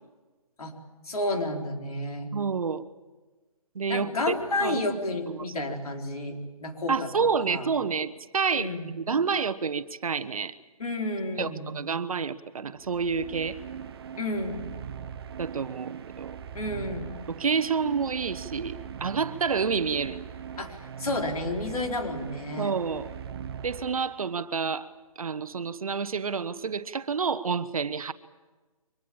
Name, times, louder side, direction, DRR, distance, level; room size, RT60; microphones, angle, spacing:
voice 1, 1.1-2.3 3.9-7.7 8.5-8.9 10.8-11.8 14.2-14.7 16.5-17.2 20.6-22.7, left 2 dB, 75° left, 3 dB, 4.4 m, -31 dB
voice 2, 2.3-2.8 3.7-4.1 4.6-4.8 5.4-5.5 6.9-8.7 9.1-10.5 11.4-13.6 15.4-16.3 17.3-20.2 22.6-23.1 23.6-24.9 25.2-28.1, right 5 dB, 70° right, 14 dB, 1.1 m, -28 dB
sound 1, 12.7-24.5, right 8 dB, 40° right, 1.1 m, -40 dB
24.0 x 21.0 x 8.8 m, 1.2 s
hypercardioid pair, 155°, 19 cm